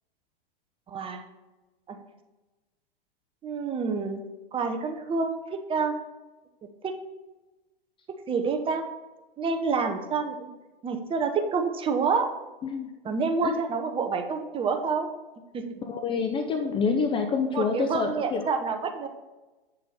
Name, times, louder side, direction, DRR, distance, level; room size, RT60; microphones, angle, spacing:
voice 1, 0.9-1.2 1.9-2.0 3.4-4.2 4.5-5.9 6.8-6.9 8.3-8.8 9.4-10.5 10.8-12.3 13.0-15.1 15.5-15.6 17.5-19.1, right 5 dB, 20° right, 5 dB, 0.8 m, -28 dB
voice 2, 15.8-18.5, left 5 dB, 15° left, 5 dB, 0.6 m, -27 dB
8.1 x 6.9 x 4.1 m, 1.1 s
hypercardioid pair, 115°, 29 cm